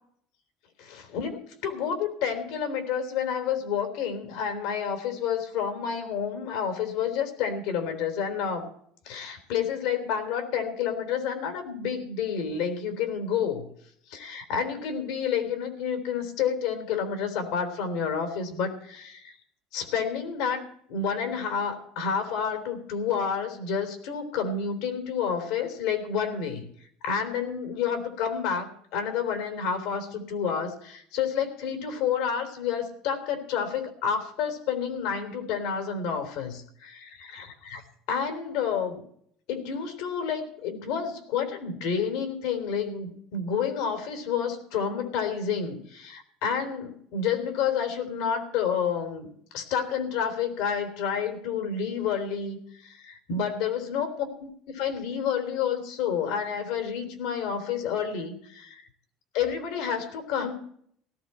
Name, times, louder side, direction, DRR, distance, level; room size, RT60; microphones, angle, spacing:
voice 1, 0.8-8.7 9.1-13.7 14.1-19.4 19.7-20.6 20.9-26.7 27.0-37.8 38.1-39.0 39.5-49.3 49.5-58.8 59.3-60.6, left 7 dB, 75° left, 6 dB, 3.5 m, -29 dB
17.0 x 15.0 x 4.4 m, 0.64 s
cardioid pair, 150°, 0 cm